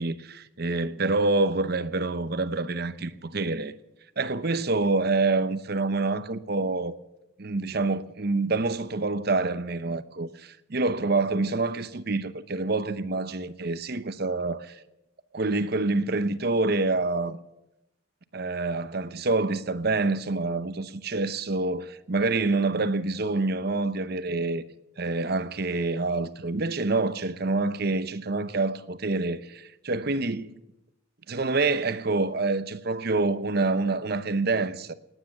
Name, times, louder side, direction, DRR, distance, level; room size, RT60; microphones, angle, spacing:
voice 1, 0.0-3.7 4.2-6.9 7.4-14.8 15.3-17.4 18.3-24.6 25.0-30.5 31.3-34.9, right 3 dB, 50° right, 0.8 m, -27 dB
19.0 x 10.0 x 7.2 m
head